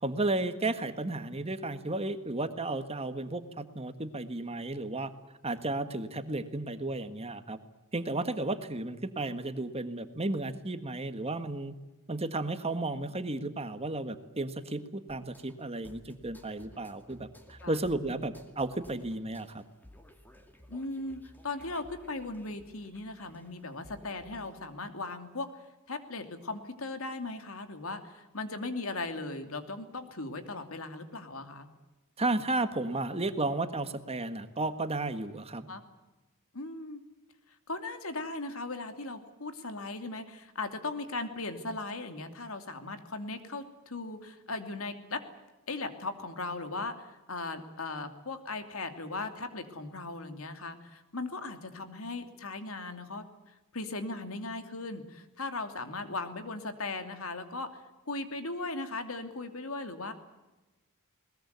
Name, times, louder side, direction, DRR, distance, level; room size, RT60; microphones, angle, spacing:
voice 1, 0.0-5.1 5.4-7.6 7.9-11.7 12.1-19.6 32.2-35.6, right 2 dB, 30° right, 10 dB, 1.6 m, -33 dB
sound 1, 15.1-24.6, equal, 10° left, 2.4 m, -56 dB
voice 2, 20.7-25.5 25.9-31.7 35.7-35.8 36.5-37.0 37.7-45.2 45.7-57.8 58.1-60.1, left 3 dB, 65° left, 8 dB, 2.7 m, -38 dB
21.5 x 20.5 x 9.4 m, 1.1 s
head